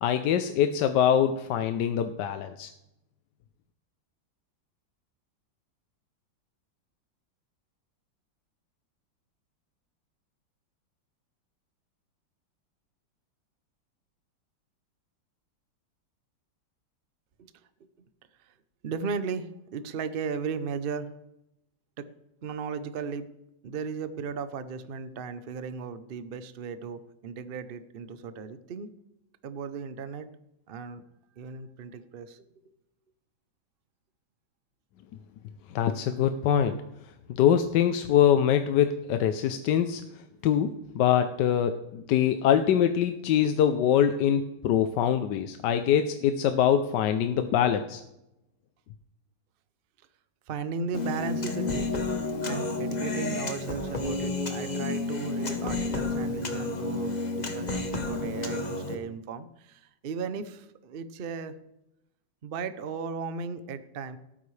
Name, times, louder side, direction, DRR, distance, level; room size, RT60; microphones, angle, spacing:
voice 1, 0.0-2.7 35.7-36.8 37.3-40.0 40.4-48.0, left 9 dB, 70° left, 9 dB, 1.2 m, -24 dB
voice 2, 18.8-21.1 22.0-22.1 22.4-23.3 23.6-28.9 29.4-30.3 30.7-31.0 31.4-32.5 50.5-51.9 52.4-61.6 62.4-64.2, right 5 dB, 85° right, 12 dB, 0.5 m, -36 dB
Human voice, 50.9-59.0, left 2 dB, 30° left, 0.9 m, -31 dB
17.0 x 9.2 x 3.3 m, 0.88 s
omnidirectional pair, 2.1 m